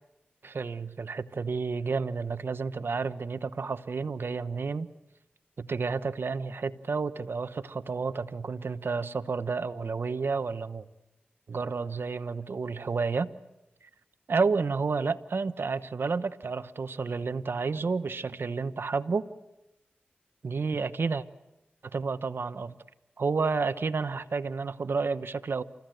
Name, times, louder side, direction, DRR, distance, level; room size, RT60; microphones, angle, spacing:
voice 1, 0.4-4.9 5.6-10.8 11.5-13.3 14.3-19.3 20.4-21.2 21.9-22.8 23.2-25.6, right 4 dB, 70° right, 1.0 m, -30 dB
28.5 x 15.0 x 9.1 m
cardioid pair, 40°, 4 cm